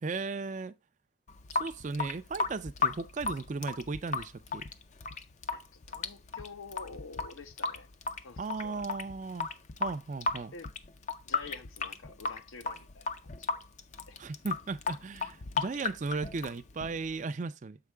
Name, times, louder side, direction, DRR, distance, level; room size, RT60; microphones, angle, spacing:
voice 1, 0.0-0.7 1.5-4.6 8.4-9.5 9.8-10.5 14.2-17.8, right 4 dB, 35° right, 0.4 m, -36 dB
Water tap faucet / Sink (filling or washing) / Drip, 1.3-17.2, left 4 dB, 35° left, 0.4 m, -35 dB
voice 2, 5.5-7.9 8.2-8.8 10.5-10.7 11.2-13.1 13.4-13.6 14.1-14.2, left 4 dB, 75° left, 0.8 m, -48 dB
7.4 x 4.8 x 3.4 m
head